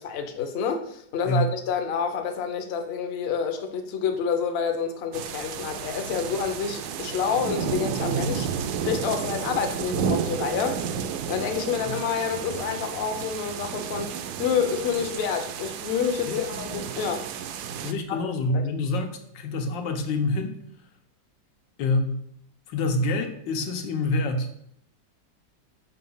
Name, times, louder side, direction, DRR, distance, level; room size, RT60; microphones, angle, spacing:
voice 1, 0.0-10.8 11.3-17.3 18.1-18.2 18.5-18.6, left 6 dB, 50° left, 5 dB, 0.8 m, -28 dB
sound 1, 5.1-17.9, right 7 dB, 70° right, 1.0 m, -32 dB
voice 2, 17.8-20.6 21.8-22.2 22.7-24.5, left 2 dB, 85° left, 5 dB, 1.6 m, -26 dB
5.9 x 4.3 x 5.5 m, 0.69 s
omnidirectional pair, 1.9 m